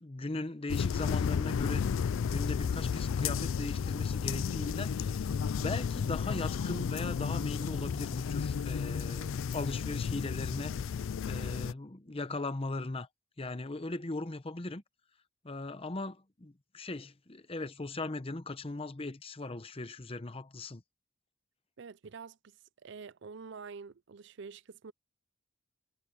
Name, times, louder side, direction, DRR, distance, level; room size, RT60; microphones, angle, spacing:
voice 1, 0.0-2.0 2.3-5.2 5.5-10.8 11.3-13.1 13.4-14.8 15.4-20.8, left 2 dB, 25° left, 0.8 m, -39 dB
sound 1, 0.7-11.7, left 6 dB, 70° left, 0.4 m, -33 dB
voice 2, 21.8-24.9, right 5 dB, 55° right, 0.5 m, -47 dB
head